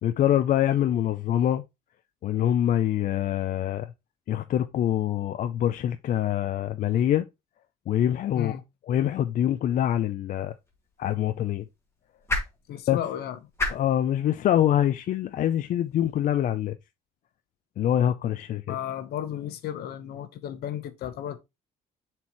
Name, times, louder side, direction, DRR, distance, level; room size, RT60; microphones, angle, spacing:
voice 1, 0.0-1.6 2.2-3.9 4.3-7.2 7.9-8.6 8.9-10.5 11.0-11.6 12.9-13.0 13.7-16.8 17.8-18.8, left 11 dB, 50° left, 0.5 m, -25 dB
sound 1, 10.5-16.7, left 2 dB, 15° left, 2.0 m, -37 dB
voice 2, 12.7-13.4 18.7-21.4, left 10 dB, 70° left, 1.0 m, -33 dB
7.3 x 4.5 x 3.0 m
cardioid pair, 110°, 17 cm